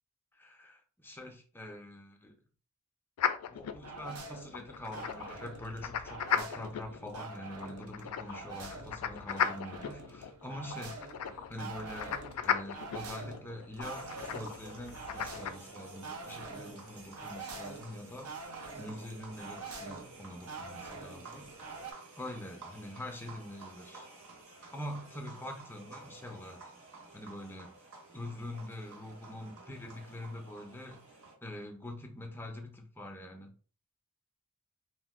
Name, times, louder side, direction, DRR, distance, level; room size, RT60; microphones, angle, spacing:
voice 1, 0.4-2.3 3.4-21.5 22.2-24.1 24.7-26.7 27.1-27.7 28.1-31.0 31.4-33.5, left 1 dB, 10° left, 3 dB, 0.4 m, -44 dB
sound 1, 3.2-15.5, left 8 dB, 85° left, 0.3 m, -37 dB
sound 2, 3.8-21.9, right 4 dB, 75° right, 0.5 m, -46 dB
sound 3, 13.8-31.3, right 3 dB, 60° right, 1.2 m, -52 dB
2.4 x 2.1 x 3.5 m, 0.39 s
head